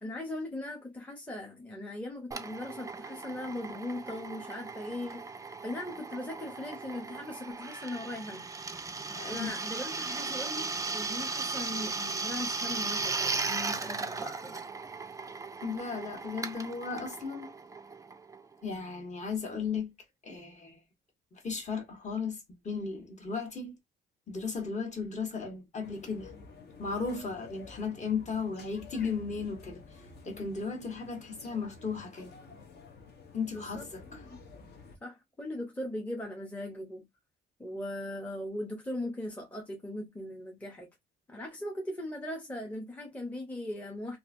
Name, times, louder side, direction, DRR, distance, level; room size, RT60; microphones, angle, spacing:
voice 1, 0.0-5.3 5.6-8.4 9.2-14.6 33.5-34.4 35.0-37.1 37.6-40.9 41.3-44.2, left 1 dB, 5° left, 0.7 m, -39 dB
Drill, 2.3-18.6, right 4 dB, 15° right, 0.3 m, -37 dB
voice 2, 9.1-9.5 15.6-17.5 18.6-19.9 20.2-20.8 21.3-23.7 24.3-26.3 26.8-29.8 30.2-32.3 33.3-34.2, left 5 dB, 35° left, 1.2 m, -35 dB
sound 1, 25.8-35.0, left 4 dB, 55° left, 0.9 m, -51 dB
2.7 x 2.5 x 2.6 m
cardioid pair, 90°, 20 cm